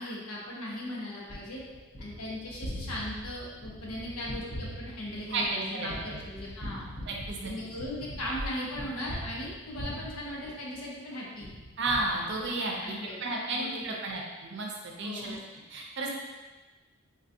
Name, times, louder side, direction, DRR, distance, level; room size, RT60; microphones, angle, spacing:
voice 1, 0.0-1.6 2.0-6.9 7.4-11.5 12.3-13.2 13.5-14.2 15.0-15.4, left 1 dB, 90° left, -4 dB, 0.9 m, -38 dB
Gunshot gunfire, 1.3-11.0 11.4-12.8, equal, 35° left, 0.8 m, -42 dB
voice 2, 5.3-6.2 7.0-7.5 11.8-15.4 15.7-16.1, right 2 dB, 55° right, -1 dB, 0.6 m, -33 dB
3.7 x 2.6 x 2.6 m, 1.2 s
head